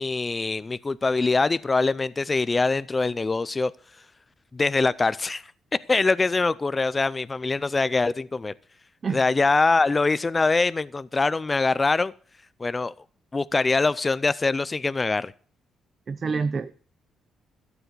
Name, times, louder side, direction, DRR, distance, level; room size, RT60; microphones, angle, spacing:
voice 1, 0.0-3.7 4.5-5.4 5.9-8.5 9.1-12.1 12.6-12.9 13.3-15.3, left 3 dB, 25° left, 0.4 m, -23 dB
voice 2, 16.1-16.7, right 5 dB, 40° right, 0.6 m, -27 dB
12.5 x 7.0 x 6.8 m
cardioid pair, 90°, 0 cm